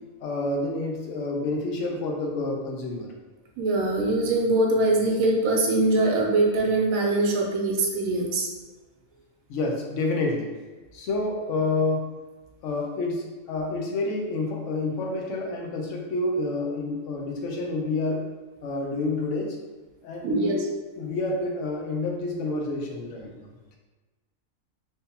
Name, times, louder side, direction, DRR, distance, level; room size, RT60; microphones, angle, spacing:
voice 1, 0.2-3.1 9.5-10.5 10.9-12.1 12.6-18.3 18.6-19.6 20.0-20.6 21.0-23.5, left 2 dB, 65° left, 0 dB, 0.9 m, -28 dB
voice 2, 3.6-8.5 20.2-20.7, right 2 dB, 80° right, -1 dB, 1.0 m, -23 dB
3.6 x 2.7 x 2.7 m, 1.2 s
omnidirectional pair, 1.5 m